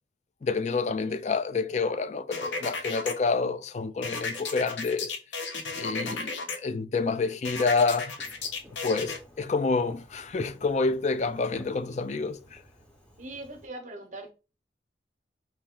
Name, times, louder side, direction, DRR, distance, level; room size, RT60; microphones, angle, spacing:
voice 1, 0.4-5.2 5.7-8.2 8.8-12.6, left 4 dB, 40° left, 0.4 m, -28 dB
sound 1, 2.3-3.1 4.0-6.6 7.4-9.2, left 4 dB, 80° left, 1.0 m, -34 dB
voice 2, 5.8-6.6 11.1-11.4 13.2-14.3, right 2 dB, 40° right, 0.9 m, -43 dB
Fireworks, 8.2-13.7, equal, 5° left, 1.0 m, -52 dB
4.5 x 2.9 x 3.7 m
head